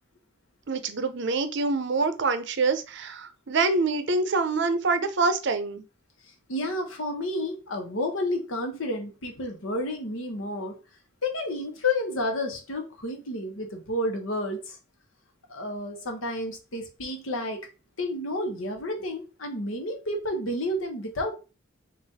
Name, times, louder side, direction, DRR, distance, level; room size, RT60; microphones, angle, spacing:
voice 1, 0.7-5.8, right 3 dB, 55° right, 10 dB, 0.6 m, -25 dB
voice 2, 6.5-10.8 11.2-14.8 15.5-17.7 18.0-21.3, left 1 dB, 75° left, 4 dB, 1.0 m, -30 dB
4.0 x 2.5 x 4.1 m, 0.32 s
head